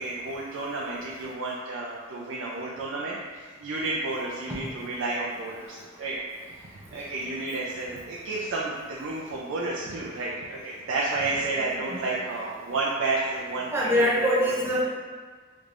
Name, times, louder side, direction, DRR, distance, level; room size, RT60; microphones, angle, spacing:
voice 1, 0.0-6.2 6.6-13.7 14.1-14.3, right 2 dB, 80° right, -5 dB, 0.4 m, -31 dB
voice 2, 11.5-12.2 13.7-14.8, equal, 15° right, -5 dB, 0.6 m, -24 dB
3.3 x 3.2 x 2.5 m, 1.5 s
head